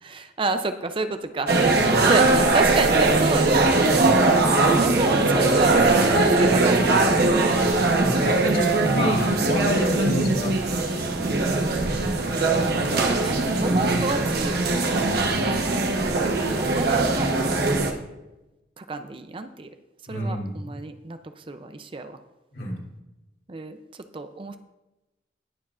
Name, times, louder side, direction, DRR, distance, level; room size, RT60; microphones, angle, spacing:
voice 1, 0.0-1.5 2.0-3.7 4.8-7.8 11.2-11.8 12.5-14.6 16.4-17.3 18.8-19.7 20.1-22.2 23.5-23.8 24.1-24.6, right 3 dB, 30° right, 9 dB, 0.5 m, -30 dB
sound 1, 1.5-17.9, right 2 dB, 60° right, 1.1 m, -21 dB
voice 2, 1.7-2.1 3.9-4.5 8.0-10.6 10.9-11.3 11.9-12.3 14.9-15.4 20.1-20.7 22.5-22.8, equal, 60° left, -3 dB, 3.3 m, -30 dB
19.5 x 7.1 x 2.5 m, 0.99 s
head